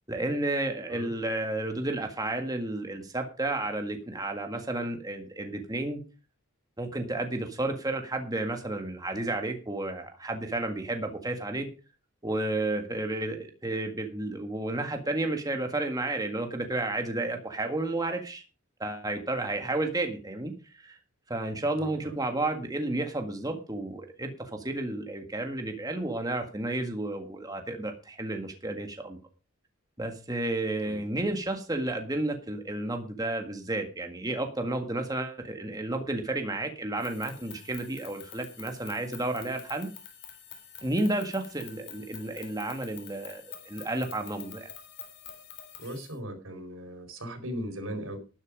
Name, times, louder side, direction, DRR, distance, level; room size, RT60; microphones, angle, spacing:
voice 1, 0.1-6.0 6.8-11.7 12.2-18.4 18.8-20.5 20.8-20.9 21.3-29.2 30.0-39.9 40.8-44.7, right 2 dB, 20° right, 5 dB, 1.7 m, -32 dB
voice 2, 21.8-22.1 30.8-31.0 45.8-48.2, equal, 90° right, 5 dB, 4.7 m, -38 dB
sound 1, 37.0-46.1, left 8 dB, 55° left, 3.8 m, -48 dB
12.0 x 11.0 x 5.2 m, 0.33 s
head